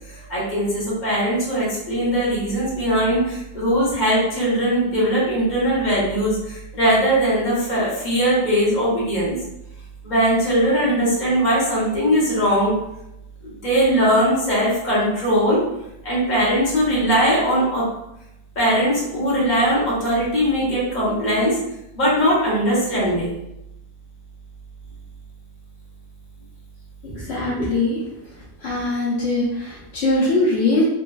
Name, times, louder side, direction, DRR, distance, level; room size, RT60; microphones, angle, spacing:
voice 1, 0.1-9.3 10.0-12.7 13.4-15.6 16.0-17.8 18.5-21.6 22.0-23.4, equal, 35° left, -7 dB, 0.7 m, -20 dB
voice 2, 27.0-28.0 28.6-30.8, left 2 dB, 90° left, -8 dB, 0.5 m, -21 dB
3.1 x 2.4 x 2.3 m, 0.86 s
omnidirectional pair, 2.2 m